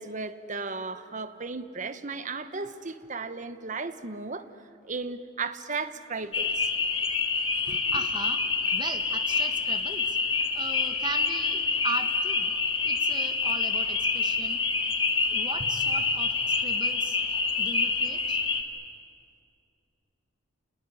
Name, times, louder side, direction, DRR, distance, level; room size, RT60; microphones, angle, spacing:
voice 1, 0.0-4.5 4.8-6.7 7.7-7.8, right 4 dB, 40° right, 11 dB, 1.1 m, -35 dB
sound 1, 6.3-18.6, left 4 dB, 25° left, 1.9 m, -27 dB
voice 2, 7.6-8.4 8.7-10.2 10.5-12.5 12.8-14.6 15.2-17.2 17.6-18.4, right 3 dB, 25° right, 8 dB, 1.4 m, -38 dB
28.0 x 19.5 x 10.0 m, 2.5 s
head